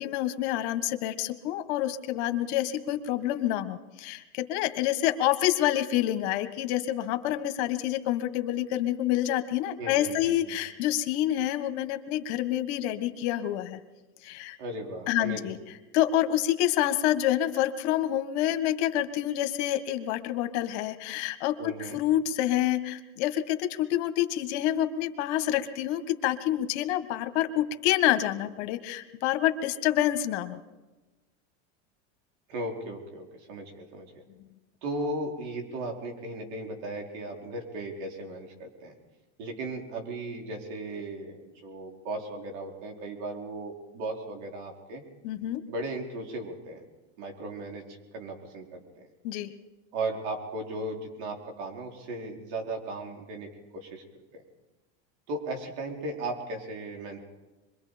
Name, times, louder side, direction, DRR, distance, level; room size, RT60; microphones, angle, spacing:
voice 1, 0.0-13.8 14.2-14.6 15.1-15.6 15.9-21.5 21.8-30.6 45.2-45.6 49.2-49.5, left 13 dB, 65° left, 10 dB, 1.6 m, -27 dB
voice 2, 9.8-10.6 14.6-15.5 21.6-22.0 32.5-34.2 34.8-38.9 39.4-45.0 45.7-46.8 47.2-49.1 49.9-54.0 55.3-57.2, right 2 dB, 65° right, 2 dB, 4.8 m, -36 dB
25.5 x 22.5 x 5.2 m, 1.1 s
supercardioid pair, 125°, 36 cm